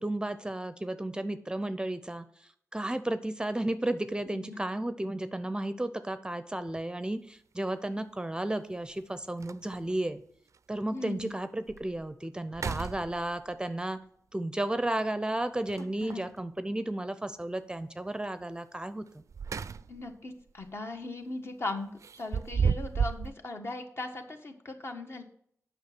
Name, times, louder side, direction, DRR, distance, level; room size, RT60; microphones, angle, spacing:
voice 1, 0.0-10.2 10.7-14.0 14.3-19.2, right 1 dB, 15° right, 11 dB, 0.6 m, -33 dB
voice 2, 4.2-4.6 10.9-11.3 15.8-16.2 19.9-25.2, left 2 dB, 50° left, 4 dB, 1.4 m, -39 dB
sound 1, 6.7-6.8 8.5-8.6 9.0-9.1 9.4-10.0 10.5-10.6 11.2-11.3 11.7-12.0 12.5-13.5 15.6-16.3 19.1-20.1 20.5-20.7 22.0-23.3, right 6 dB, 65° right, 0.4 m, -33 dB
8.6 x 6.1 x 6.0 m, 0.67 s
wide cardioid pair, 90°, 6 cm